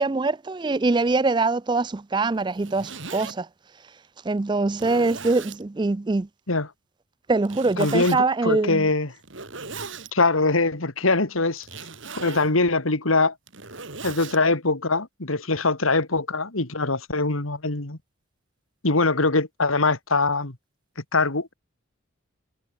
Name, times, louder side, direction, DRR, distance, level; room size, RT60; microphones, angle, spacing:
voice 1, 0.0-3.5 4.2-6.3 7.3-8.9, right 3 dB, 20° right, 0.4 m, -23 dB
Zipper (clothing), 2.4-3.3 4.0-4.1 4.7-5.6 7.4-8.2 9.2-10.1 11.6-12.5 13.3-14.4, right 4 dB, 70° right, 4.5 m, -37 dB
voice 2, 7.8-9.1 10.1-11.7 12.2-13.3 14.0-18.0 18.8-20.6 21.1-21.5, left 3 dB, 90° left, 2.6 m, -22 dB
head